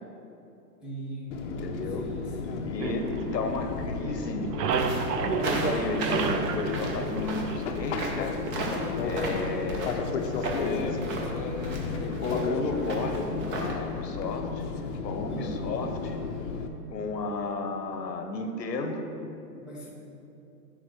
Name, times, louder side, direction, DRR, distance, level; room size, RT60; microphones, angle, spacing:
voice 1, 0.8-1.5 1.9-3.1 15.3-15.7 19.6-19.9, right 1 dB, ahead, -8 dB, 0.6 m, -41 dB
Fixed-wing aircraft airplane, 1.3-16.7, left 4 dB, 45° left, 0.8 m, -33 dB
voice 2, 1.6-2.0 2.6-4.5 5.5-8.4 9.0-11.1 12.1-14.7 15.0-16.3 16.9-19.1, left 3 dB, 85° left, 5 dB, 1.2 m, -33 dB
sound 1, 2.8-3.9 4.2-7.9, right 5 dB, 75° right, 0.8 m, -31 dB
sound 2, 4.7-13.7, right 2 dB, 25° right, 1.0 m, -35 dB
10.0 x 3.9 x 6.1 m, 2.8 s
hypercardioid pair, 140°, 49 cm